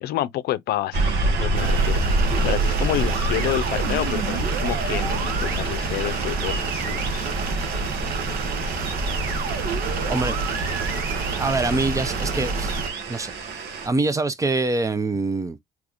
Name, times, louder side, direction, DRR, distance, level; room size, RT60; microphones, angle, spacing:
voice 1, 0.0-2.0 2.4-7.3, left 13 dB, 70° left, 0.5 m, -29 dB
sound 1, 0.9-13.9, right 3 dB, 80° right, 1.2 m, -27 dB
sound 2, 1.5-12.9, right 3 dB, 60° right, 1.0 m, -28 dB
voice 2, 11.4-12.8 13.1-13.3 13.8-15.6, right 3 dB, 20° right, 0.5 m, -24 dB
3.5 x 3.0 x 2.5 m
cardioid pair, 110°, 17 cm